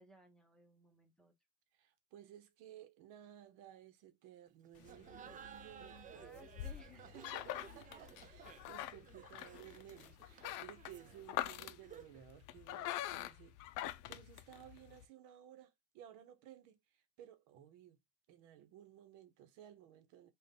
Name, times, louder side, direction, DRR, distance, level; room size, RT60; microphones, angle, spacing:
voice 1, 0.0-1.3 6.1-8.0, left 1 dB, ahead, 1.0 m, -63 dB
voice 2, 1.7-6.2 6.9-13.8 14.1-18.0 18.3-20.3, right 11 dB, 75° right, 1.0 m, -57 dB
sound 1, 4.8-15.0, left 13 dB, 70° left, 0.5 m, -45 dB
Laughter, 4.8-12.3, right 8 dB, 25° right, 0.4 m, -56 dB
3.8 x 2.5 x 3.7 m
cardioid pair, 125°, 32 cm